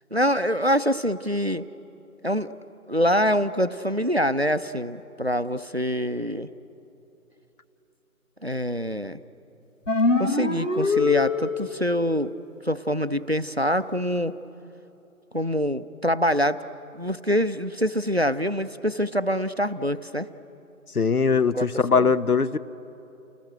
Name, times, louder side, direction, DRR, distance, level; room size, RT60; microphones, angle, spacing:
voice 1, 0.1-1.7 2.2-2.5 2.9-6.5 8.4-9.2 10.2-12.3 12.7-14.3 15.3-16.6 16.9-20.3 21.5-22.1, equal, 45° right, 13 dB, 0.5 m, -25 dB
sound 1, 9.9-11.8, left 3 dB, 55° left, 1.5 m, -23 dB
voice 2, 20.9-22.6, left 5 dB, 80° left, 15 dB, 0.9 m, -21 dB
29.0 x 18.5 x 7.7 m, 2.9 s
figure-of-eight pair, 175°, 44 cm